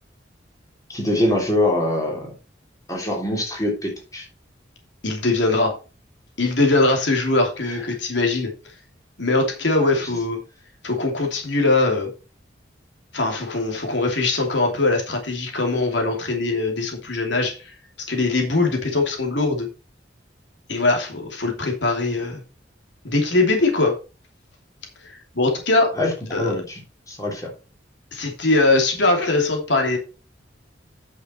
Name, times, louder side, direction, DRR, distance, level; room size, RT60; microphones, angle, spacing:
voice 1, 0.9-2.3 2.9-4.2 10.0-10.2 26.0-26.1 26.4-26.8 27.1-27.5, left 1 dB, 20° left, 0 dB, 3.3 m, -23 dB
voice 2, 5.0-5.7 6.4-8.5 9.2-10.4 10.8-12.1 13.1-17.7 18.1-19.7 20.7-22.4 23.0-24.0 25.3-25.9 26.3-26.5 28.1-30.0, left 2 dB, 75° left, 2 dB, 2.8 m, -21 dB
9.2 x 6.5 x 4.4 m, 0.32 s
head